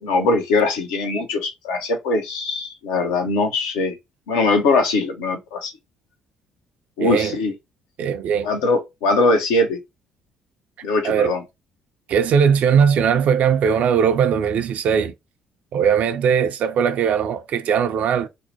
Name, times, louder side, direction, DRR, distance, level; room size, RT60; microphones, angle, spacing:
voice 1, 0.0-4.0 4.3-5.7 7.0-7.5 8.4-9.8 10.8-11.4, left 3 dB, 75° left, 0.7 m, -21 dB
voice 2, 7.0-7.4 8.0-8.5 11.0-11.3 12.1-15.1 15.7-18.3, right 7 dB, 55° right, 0.4 m, -19 dB
2.7 x 2.0 x 2.8 m
hypercardioid pair, 50°, 3 cm